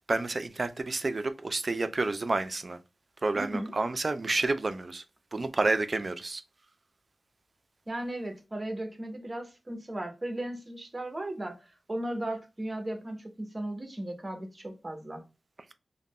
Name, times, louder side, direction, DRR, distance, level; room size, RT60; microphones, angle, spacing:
voice 1, 0.1-2.8 3.2-5.0 5.3-6.4, right 3 dB, 45° right, 0.3 m, -29 dB
voice 2, 3.3-3.7 7.9-15.2, right 1 dB, 30° right, 0.7 m, -36 dB
2.3 x 2.1 x 3.5 m
wide cardioid pair, 75°, 0 cm